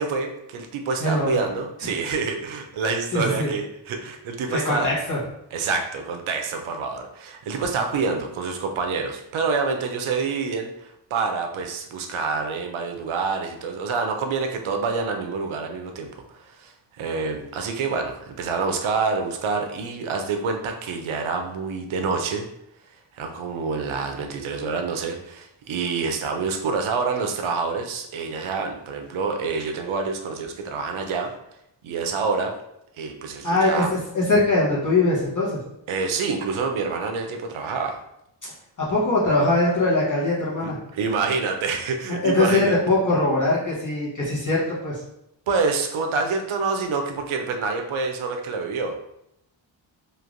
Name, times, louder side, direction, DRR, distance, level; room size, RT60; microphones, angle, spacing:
voice 1, 0.0-4.9 5.5-22.5 23.1-31.3 31.8-32.6 33.0-33.9 35.9-38.0 40.6-42.8 45.5-49.0, right 4 dB, 85° right, 4 dB, 0.6 m, -27 dB
voice 2, 1.0-1.4 3.1-3.5 4.5-5.2 33.4-35.6 38.8-40.8 42.1-45.0, left 2 dB, 40° left, -7 dB, 0.9 m, -22 dB
3.1 x 2.5 x 2.5 m, 0.80 s
wide cardioid pair, 150°, 47 cm